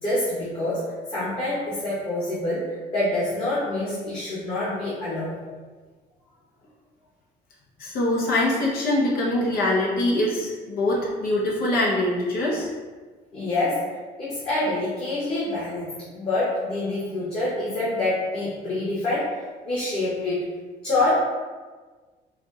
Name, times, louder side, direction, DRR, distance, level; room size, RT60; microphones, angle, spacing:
voice 1, 0.0-5.4 13.3-13.9 14.2-19.3 19.6-20.4 20.8-21.1, left 2 dB, 35° left, -9 dB, 1.5 m, -26 dB
voice 2, 7.8-12.7, left 1 dB, 60° left, -4 dB, 1.1 m, -23 dB
4.6 x 2.4 x 4.0 m, 1.4 s
cardioid pair, 110°, 17 cm